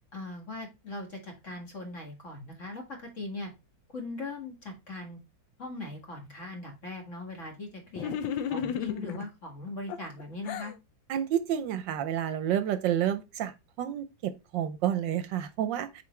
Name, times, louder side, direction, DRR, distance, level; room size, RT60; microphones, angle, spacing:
voice 1, 0.1-3.5 3.9-5.2 5.6-8.1 8.5-10.7, left 2 dB, 40° left, 2.1 m, -40 dB
sound 1, 7.9-9.3 9.9-10.7, left 8 dB, 75° left, 1.4 m, -33 dB
voice 2, 11.1-13.5 13.8-16.0, right 10 dB, 75° right, 1.3 m, -29 dB
7.0 x 4.7 x 3.2 m
omnidirectional pair, 2.1 m